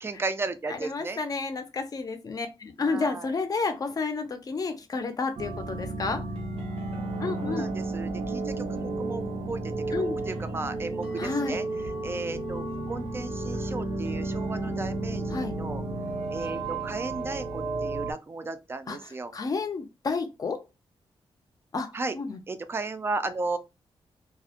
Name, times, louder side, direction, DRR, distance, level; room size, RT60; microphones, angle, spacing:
voice 1, 0.0-1.2 2.8-3.3 7.4-11.7 12.0-15.8 16.3-19.3 21.9-22.2 22.5-23.6, right 3 dB, 25° right, 0.3 m, -35 dB
voice 2, 0.7-6.2 7.2-7.7 9.9-10.2 11.2-11.6 15.3-15.5 18.9-20.6 21.7-21.9 22.1-22.4, left 4 dB, 40° left, 0.5 m, -31 dB
sound 1, 5.4-18.1, right 2 dB, 80° right, 0.7 m, -32 dB
2.4 x 2.0 x 2.7 m
wide cardioid pair, 130°, 10 cm